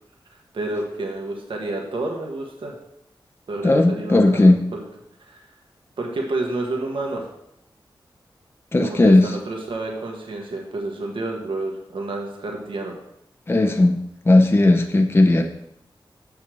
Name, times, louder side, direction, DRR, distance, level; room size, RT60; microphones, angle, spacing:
voice 1, 0.5-2.7 3.5-4.8 5.2-5.4 6.0-7.2 8.8-12.9, right 2 dB, 80° right, 0 dB, 1.5 m, -29 dB
voice 2, 3.6-4.6 8.7-9.3 13.5-14.0 14.3-15.4, left 2 dB, 25° left, 5 dB, 0.6 m, -16 dB
6.7 x 5.6 x 6.2 m, 0.79 s
wide cardioid pair, 90°, 9 cm